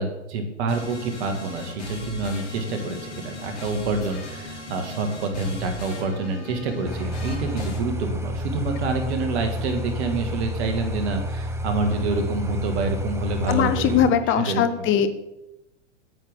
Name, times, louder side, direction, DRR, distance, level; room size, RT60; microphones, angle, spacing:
voice 1, 0.0-14.1 14.5-15.0, right 3 dB, 65° right, 5 dB, 2.1 m, -27 dB
sound 1, 0.7-7.8, left 2 dB, 70° left, 3.2 m, -38 dB
sound 2, 6.8-14.1, equal, 5° right, 0.9 m, -30 dB
voice 2, 13.5-15.1, left 8 dB, 35° left, 10 dB, 0.8 m, -20 dB
9.2 x 9.0 x 3.7 m, 0.93 s
hypercardioid pair, 105°, 36 cm